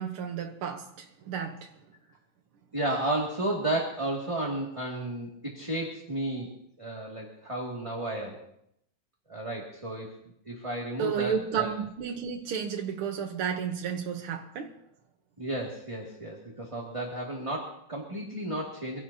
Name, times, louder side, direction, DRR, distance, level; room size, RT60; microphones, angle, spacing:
voice 1, 0.0-1.7 11.0-14.8, right 7 dB, 85° right, 2.0 m, -32 dB
voice 2, 2.7-6.5 6.8-8.4 9.3-10.1 10.5-11.7 15.4-19.0, right 1 dB, 15° right, 2.2 m, -33 dB
25.0 x 17.0 x 2.8 m
omnidirectional pair, 2.3 m